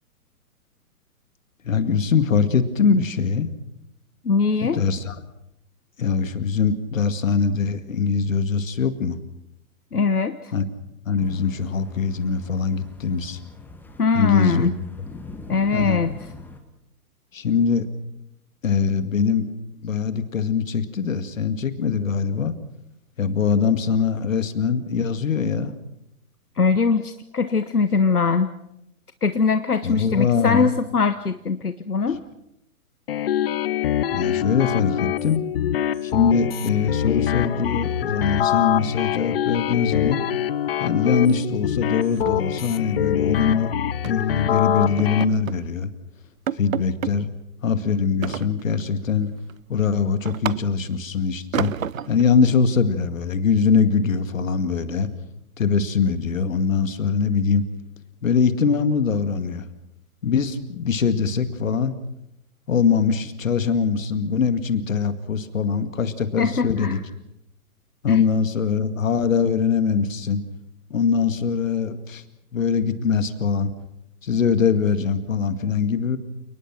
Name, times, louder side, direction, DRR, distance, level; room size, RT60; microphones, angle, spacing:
voice 1, 1.6-3.5 4.6-5.2 6.0-9.2 10.5-10.7 11.1-13.4 14.1-14.8 15.7-16.0 17.3-17.9 18.6-19.5 19.8-22.6 23.2-25.7 29.8-30.7 34.1-35.4 36.0-40.2 40.8-43.7 44.0-45.9 46.5-47.3 47.6-49.3 49.7-51.7 52.1-55.1 55.6-57.6 58.2-59.7 60.2-62.0 62.7-67.0 68.0-70.4 70.9-72.2 72.5-73.7 74.2-76.2, left 6 dB, 60° left, 11 dB, 2.2 m, -22 dB
voice 2, 4.2-4.8 9.9-10.4 14.0-14.7 15.5-16.1 26.6-28.5 29.2-32.2 66.4-67.0 68.1-68.2, left 4 dB, 80° left, 11 dB, 1.2 m, -21 dB
sound 1, 11.2-16.6, left 3 dB, 5° left, 1.7 m, -43 dB
sound 2, 33.1-45.2, left 11 dB, 40° left, 0.9 m, -25 dB
sound 3, 39.3-40.1 40.4-40.6 40.9-41.2 41.4-41.5 41.9-43.5 44.0-44.3 44.8-45.7 46.0-46.1 46.5-47.2 48.2-48.9 49.4-51.0 51.5-52.3, right 9 dB, 60° right, 0.7 m, -32 dB
29.5 x 19.5 x 6.1 m, 0.83 s
figure-of-eight pair, 125°, 44 cm